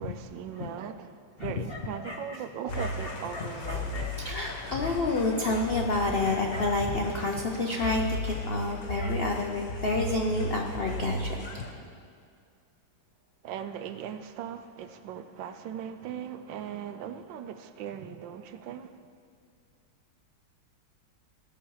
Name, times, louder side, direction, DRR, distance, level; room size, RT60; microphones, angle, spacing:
voice 1, 0.0-4.2 13.4-19.0, right 8 dB, 75° right, 9 dB, 1.3 m, -39 dB
voice 2, 1.4-1.8 2.0-2.4 2.8-11.6, left 2 dB, 75° left, 1 dB, 0.5 m, -30 dB
sound 1, 2.7-11.7, left 1 dB, 50° left, 1.3 m, -35 dB
16.0 x 7.0 x 4.7 m, 2.2 s
omnidirectional pair, 2.1 m